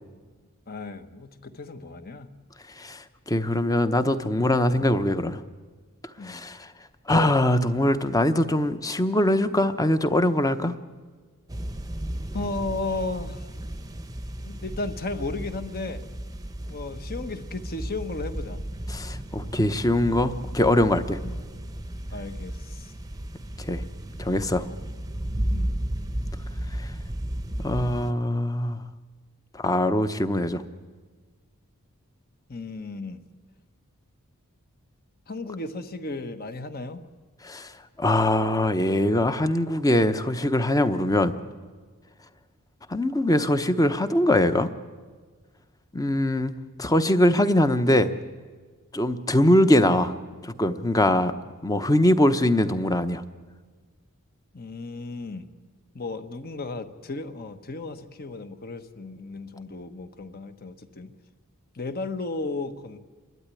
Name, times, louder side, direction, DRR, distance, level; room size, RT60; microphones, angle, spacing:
voice 1, 0.7-2.3 6.2-6.4 12.3-13.5 14.4-16.0 16.7-18.6 21.2-21.4 22.1-22.9 25.5-25.7 32.5-33.2 35.3-37.0 54.5-55.5 55.9-61.1 61.7-63.0, left 3 dB, 45° left, 9 dB, 1.2 m, -34 dB
voice 2, 2.8-5.4 6.2-6.7 7.1-10.8 18.9-21.2 23.6-23.8 24.2-24.7 26.8-26.9 27.6-28.8 29.5-30.6 37.4-37.7 38.0-41.4 42.9-44.7 45.9-46.5 46.8-48.1 48.9-50.1 50.4-51.3 51.6-53.2, left 1 dB, 15° left, 10 dB, 0.9 m, -22 dB
sound 1, 11.5-28.1, right 1 dB, 15° right, 0.9 m, -34 dB
29.0 x 12.5 x 9.8 m, 1.5 s
head